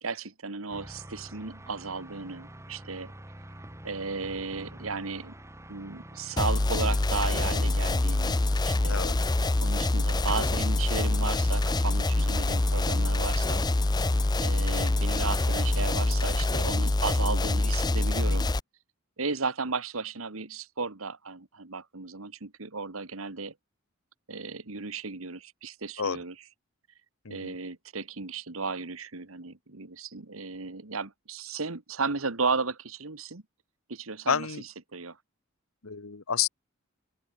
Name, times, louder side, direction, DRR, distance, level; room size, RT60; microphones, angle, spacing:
voice 1, 0.0-3.1 3.8-5.3 5.7-8.4 8.7-9.0 9.6-13.7 14.4-18.5 19.2-23.5 24.3-26.3 27.3-33.4 33.9-34.5 34.9-35.2, right 4 dB, 80° right, 1.8 m, -34 dB
sound 1, 0.7-16.3, right 1 dB, 15° right, 2.2 m, -46 dB
sound 2, 6.4-18.6, left 2 dB, 20° left, 0.6 m, -25 dB
voice 2, 34.3-34.6 35.8-36.5, left 7 dB, 85° left, 1.2 m, -30 dB
head